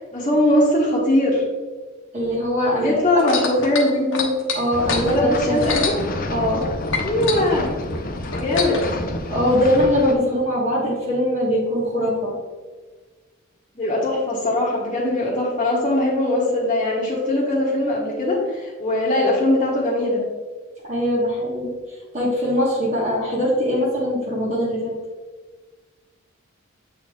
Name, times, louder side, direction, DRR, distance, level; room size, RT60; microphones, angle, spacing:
voice 1, 0.0-1.4 2.8-4.4 5.0-5.9 7.0-7.7 8.3-8.9 13.7-20.2, left 1 dB, 30° left, -9 dB, 1.3 m, -21 dB
voice 2, 2.1-2.9 3.2-3.3 4.5-5.6 6.3-6.7 9.3-12.3 20.8-21.7 22.1-25.0, equal, 35° right, -6 dB, 1.5 m, -21 dB
sound 1, 3.2-6.6 6.9-8.9 9.7-9.8, left 5 dB, 65° left, 1.1 m, -27 dB
sound 2, 4.7-10.1, left 1 dB, 45° left, 0.6 m, -29 dB
7.9 x 4.2 x 3.6 m, 1.4 s
head